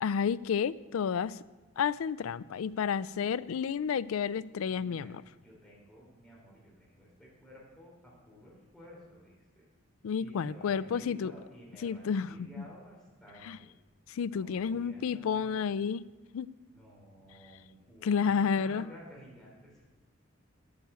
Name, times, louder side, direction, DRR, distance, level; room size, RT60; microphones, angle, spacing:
voice 1, 0.0-1.4 1.8-5.2 10.0-11.3 11.8-12.3 12.6-12.7 13.5-13.6 14.1-16.1 16.3-16.5 18.0-18.8, left 6 dB, 90° left, 18 dB, 0.4 m, -30 dB
voice 2, 4.7-9.7 10.2-13.7 14.3-15.6 16.7-19.8, equal, 5° left, -5 dB, 3.7 m, -53 dB
9.3 x 8.9 x 6.9 m, 1.2 s
head